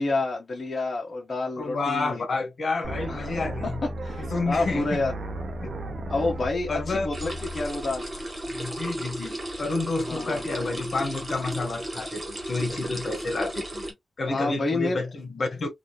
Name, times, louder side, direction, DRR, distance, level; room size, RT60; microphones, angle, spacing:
voice 1, 0.0-2.2 3.1-3.3 3.6-3.7 4.0-5.1 6.1-8.1 10.1-10.4 14.2-15.0, left 3 dB, 40° left, 1.1 m, -28 dB
voice 2, 1.6-3.8 4.2-5.1 5.6-5.7 6.7-7.3 8.5-13.9 14.2-15.7, left 3 dB, 60° left, 1.2 m, -30 dB
sound 1, 2.8-8.8, right 1 dB, 60° right, 0.8 m, -35 dB
sound 2, 7.1-13.9, right 1 dB, 35° right, 1.4 m, -34 dB
4.0 x 2.6 x 2.3 m
wide cardioid pair, 105°, 0 cm